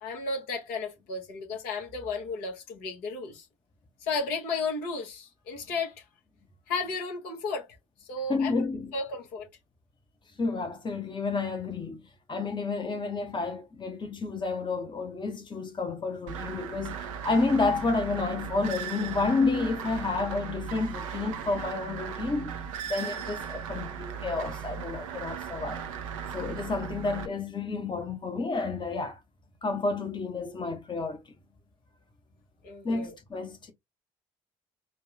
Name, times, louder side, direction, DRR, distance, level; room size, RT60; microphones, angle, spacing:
voice 1, 0.0-3.4 4.0-6.0 6.7-7.7 8.1-8.5 8.9-9.5 32.6-33.1, left 3 dB, 65° left, 1.5 m, -33 dB
voice 2, 8.3-8.9 10.4-12.0 12.3-22.5 22.8-25.8 26.3-29.2 29.6-31.2 32.8-33.7, left 3 dB, 30° left, 1.0 m, -30 dB
sound 1, 16.3-27.3, right 7 dB, 75° right, 0.6 m, -37 dB
4.3 x 2.4 x 3.3 m
figure-of-eight pair, 50°, 17 cm